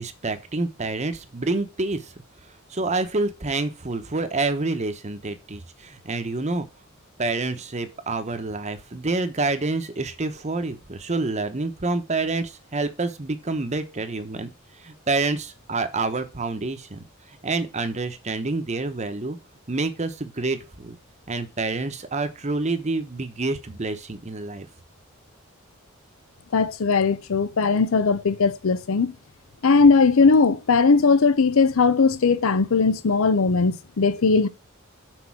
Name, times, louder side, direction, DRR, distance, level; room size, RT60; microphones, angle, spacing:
voice 1, 0.0-2.1 2.7-6.7 7.2-14.5 14.8-17.0 17.4-19.4 19.7-21.0 21.3-24.7, right 3 dB, 35° right, 1.0 m, -27 dB
voice 2, 26.5-29.1 29.6-34.5, left 4 dB, 75° left, 0.6 m, -19 dB
6.4 x 4.5 x 5.9 m
head